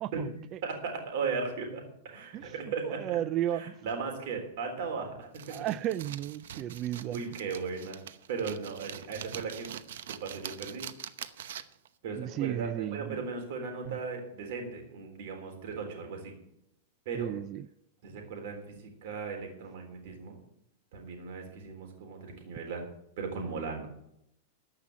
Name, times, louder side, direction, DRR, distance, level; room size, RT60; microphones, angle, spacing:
voice 1, 0.0-0.6 2.3-2.5 2.8-3.6 5.5-7.2 12.2-13.2 13.8-14.0 17.1-17.7, right 12 dB, 30° right, 0.4 m, -34 dB
voice 2, 0.6-3.2 3.5-5.6 7.1-8.0 8.3-9.7 10.2-10.9 12.0-16.3 17.1-17.3 18.0-18.8 19.0-20.4 20.9-22.8 23.2-23.9, right 5 dB, 60° right, 3.7 m, -37 dB
sound 1, 5.3-11.9, right 10 dB, 80° right, 0.8 m, -44 dB
13.5 x 5.8 x 9.7 m
supercardioid pair, 150°, 0 cm